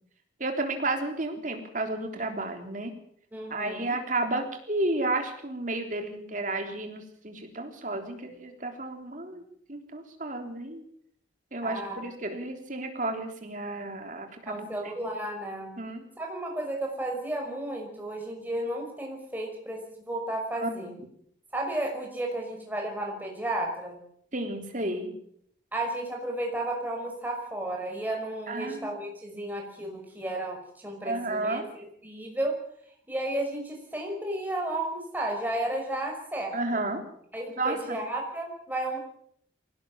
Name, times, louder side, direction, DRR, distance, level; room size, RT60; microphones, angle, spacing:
voice 1, 0.4-2.9 3.5-9.4 9.7-10.8 11.5-14.7 15.8-16.0 20.6-21.0 24.3-25.1 28.5-28.9 31.0-31.6 36.5-37.1 37.6-38.0, right 2 dB, 40° right, 4 dB, 3.6 m, -32 dB
voice 2, 3.3-3.9 11.6-12.1 14.5-15.8 16.2-20.9 21.5-24.0 25.7-32.6 33.1-36.6 37.3-39.0, right 1 dB, 10° right, 1 dB, 5.8 m, -33 dB
23.5 x 17.5 x 7.4 m, 0.69 s
head